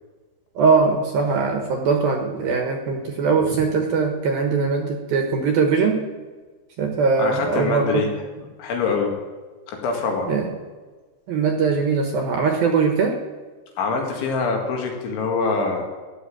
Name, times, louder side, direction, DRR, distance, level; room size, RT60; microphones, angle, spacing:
voice 1, 0.6-6.1 6.8-8.0 10.3-10.5 11.3-13.2, right 5 dB, 65° right, 3 dB, 2.6 m, -21 dB
voice 2, 7.2-9.1 9.7-10.3 13.8-15.8, left 4 dB, 80° left, 1 dB, 4.4 m, -24 dB
14.5 x 10.0 x 7.5 m, 1.3 s
omnidirectional pair, 5.4 m